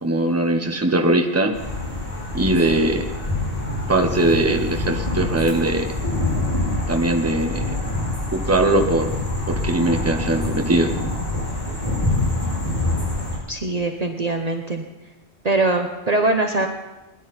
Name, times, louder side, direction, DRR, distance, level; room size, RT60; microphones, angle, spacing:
voice 1, 0.0-1.5 2.3-3.1 3.9-5.9 6.9-7.6 8.3-9.1 9.5-10.9, right 1 dB, 15° right, 3 dB, 1.1 m, -20 dB
sound 1, 1.5-13.4, left 2 dB, 35° left, 5.0 m, -26 dB
voice 2, 13.5-14.8 15.4-16.7, right 2 dB, 40° right, 4 dB, 1.0 m, -22 dB
20.5 x 11.0 x 4.3 m, 1.1 s
omnidirectional pair, 1.1 m